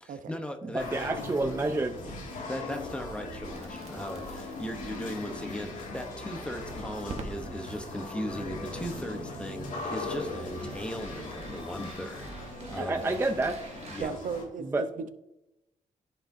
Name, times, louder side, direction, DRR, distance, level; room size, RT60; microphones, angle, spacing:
voice 1, 0.0-1.1 2.5-12.3 12.7-13.0 13.9-14.1, equal, 10° left, 4 dB, 0.8 m, -38 dB
voice 2, 0.7-2.0 12.8-13.6 14.7-14.8, right 2 dB, 20° right, 4 dB, 0.4 m, -28 dB
sound 1, 0.8-14.5, left 2 dB, 80° left, 2.0 m, -39 dB
Crackle, 3.2-14.0, right 3 dB, 55° right, 1.0 m, -49 dB
voice 3, 14.0-14.9, right 6 dB, 75° right, 10 dB, 0.7 m, -36 dB
14.0 x 5.0 x 2.6 m, 0.90 s
wide cardioid pair, 160°, 13 cm